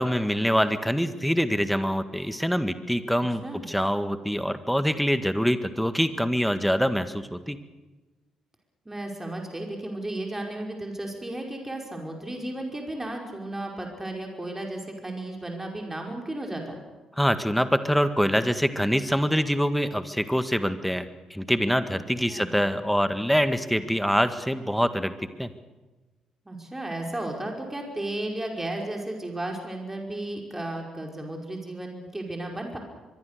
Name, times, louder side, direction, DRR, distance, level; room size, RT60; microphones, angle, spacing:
voice 1, 0.0-7.6 17.2-25.1 25.4-25.5, equal, ahead, 11 dB, 1.8 m, -25 dB
voice 2, 8.9-16.8 22.3-22.5 26.5-32.8, right 1 dB, 15° right, 1 dB, 5.4 m, -34 dB
24.0 x 22.0 x 6.8 m, 1.2 s
figure-of-eight pair, 40°, 2 cm